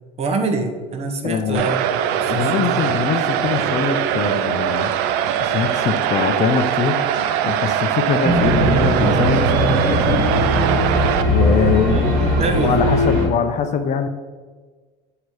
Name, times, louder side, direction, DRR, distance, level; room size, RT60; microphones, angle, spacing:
voice 1, 0.2-2.9 11.9-12.8, right 3 dB, 35° right, 6 dB, 0.8 m, -26 dB
voice 2, 1.2-1.8 2.3-4.9 5.4-7.1 7.4-10.3 11.3-14.1, left 6 dB, 45° left, 8 dB, 0.5 m, -22 dB
sound 1, 1.5-11.2, right 10 dB, 75° right, 0.4 m, -21 dB
sound 2, 8.2-13.3, equal, 55° right, 1.7 m, -19 dB
7.6 x 2.8 x 4.7 m, 1.4 s
cardioid pair, 120°, 17 cm